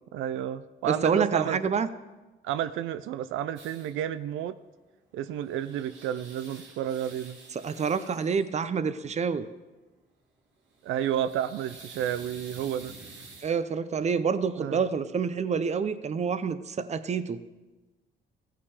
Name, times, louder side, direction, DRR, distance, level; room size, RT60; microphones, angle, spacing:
voice 1, 0.0-1.6 2.4-4.6 5.1-7.4 10.8-12.9 14.6-14.8, right 10 dB, 85° right, 13 dB, 0.4 m, -31 dB
voice 2, 0.9-1.9 7.5-9.4 13.4-17.4, right 6 dB, 35° right, 13 dB, 0.6 m, -27 dB
sound 1, 3.6-4.0 5.2-8.5 10.7-13.6, right 3 dB, 70° right, 2.5 m, -49 dB
15.5 x 5.8 x 4.8 m, 1.2 s
cardioid pair, 90°, 20 cm